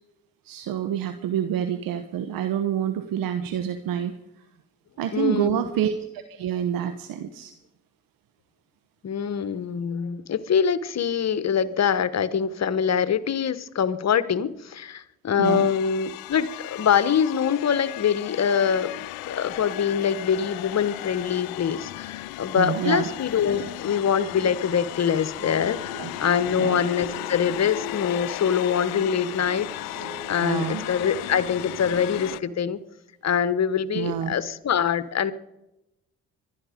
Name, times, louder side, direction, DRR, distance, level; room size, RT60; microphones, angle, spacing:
voice 1, 0.4-4.1 5.0-7.5 15.4-15.7 22.6-23.1 26.0-26.1 26.6-26.8 30.4-30.8 33.9-34.3, right 9 dB, 70° right, 10 dB, 1.1 m, -27 dB
voice 2, 5.1-5.6 9.0-32.8 33.2-35.3, left 7 dB, 45° left, 15 dB, 1.2 m, -24 dB
sound 1, 15.4-32.4, left 17 dB, 75° left, 0.6 m, -36 dB
sound 2, 23.5-32.8, right 4 dB, 90° right, 2.1 m, -45 dB
22.5 x 12.0 x 5.1 m, 0.90 s
hypercardioid pair, 50°, 35 cm